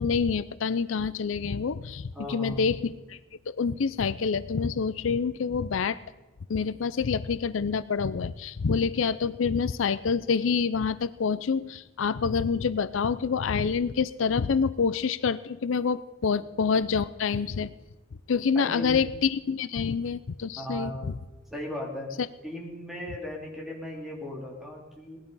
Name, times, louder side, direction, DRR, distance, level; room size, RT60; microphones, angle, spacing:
voice 1, 0.0-3.2 3.5-6.0 6.5-17.7 18.3-21.1, left 5 dB, 75° left, 16 dB, 0.5 m, -27 dB
voice 2, 2.1-2.7 18.5-19.1 19.7-19.8 20.6-22.1 22.4-25.2, left 1 dB, ahead, -1 dB, 3.0 m, -37 dB
18.5 x 11.5 x 5.4 m, 1.1 s
head